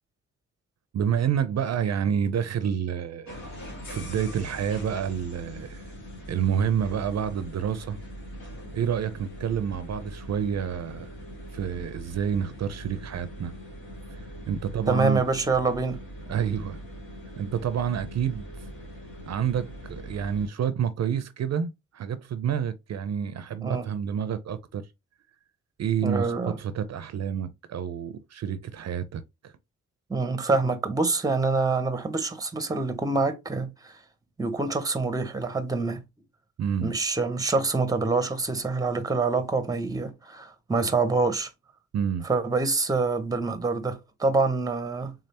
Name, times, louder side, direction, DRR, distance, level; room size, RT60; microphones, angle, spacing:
voice 1, 0.9-3.4 3.9-5.8 6.3-8.0 8.7-11.2 11.5-13.5 14.1-15.2 16.3-16.8 17.4-18.5 19.3-24.8 25.8-29.5 36.6-36.9 41.9-42.3, right 8 dB, 60° right, 0.5 m, -28 dB
sound 1, 3.3-20.5, equal, 80° left, 1.8 m, -41 dB
voice 2, 14.9-16.0 23.6-23.9 26.0-26.6 30.1-33.9 34.4-36.0 36.8-41.5 42.2-45.1, right 3 dB, 10° right, 0.7 m, -26 dB
3.6 x 3.3 x 2.8 m
wide cardioid pair, 115°, 30 cm